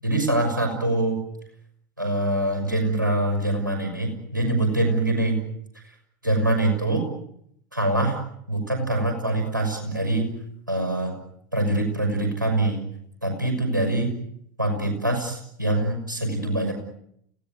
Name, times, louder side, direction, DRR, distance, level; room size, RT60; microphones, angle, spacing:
voice 1, 0.0-1.2 2.0-5.4 6.2-7.0 7.7-8.2 8.5-10.3 10.7-11.2 11.5-12.8 13.2-14.1 14.6-16.7, right 2 dB, 90° right, 4 dB, 6.2 m, -24 dB
29.5 x 17.5 x 9.6 m, 0.72 s
figure-of-eight pair, 75°, 10 cm